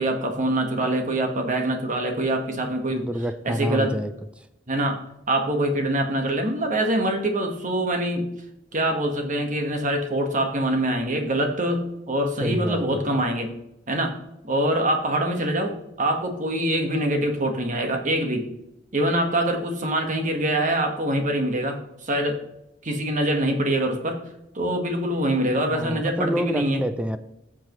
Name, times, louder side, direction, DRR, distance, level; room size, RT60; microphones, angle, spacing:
voice 1, 0.0-3.1 3.4-4.0 4.7-5.0 5.3-8.3 8.7-13.5 13.9-14.2 14.4-18.4 18.9-22.4 22.8-24.2 24.5-26.8, right 1 dB, 45° right, 4 dB, 1.4 m, -24 dB
voice 2, 2.9-4.5 12.4-13.2 25.7-27.2, equal, 5° right, 10 dB, 0.4 m, -28 dB
14.5 x 7.5 x 3.1 m, 0.84 s
head